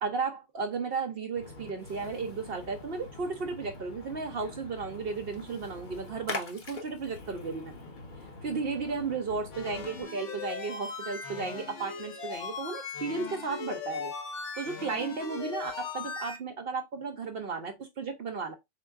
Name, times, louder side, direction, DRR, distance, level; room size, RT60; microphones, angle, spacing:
voice 1, 0.0-7.7 8.4-14.1 14.6-18.5, right 4 dB, 60° right, 0.8 m, -34 dB
Splash splatter, 1.4-10.0, left 3 dB, 45° left, 1.0 m, -44 dB
sound 1, 9.5-16.4, left 5 dB, 70° left, 1.2 m, -39 dB
3.7 x 3.7 x 2.4 m
omnidirectional pair, 1.3 m